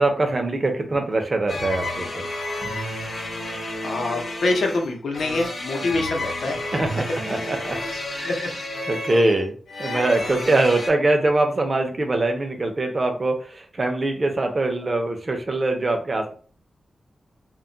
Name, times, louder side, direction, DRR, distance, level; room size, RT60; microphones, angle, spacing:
voice 1, 0.0-2.2 5.8-6.0 6.5-7.8 8.1-8.5 8.9-16.3, right 2 dB, 30° right, 4 dB, 0.5 m, -23 dB
sound 1, 1.5-10.9, left 1 dB, 50° left, 0.8 m, -31 dB
voice 2, 3.8-6.6 7.4-7.5 8.2-8.5, left 2 dB, 85° left, 2 dB, 0.7 m, -25 dB
2.2 x 2.1 x 3.7 m, 0.41 s
wide cardioid pair, 160°, 0 cm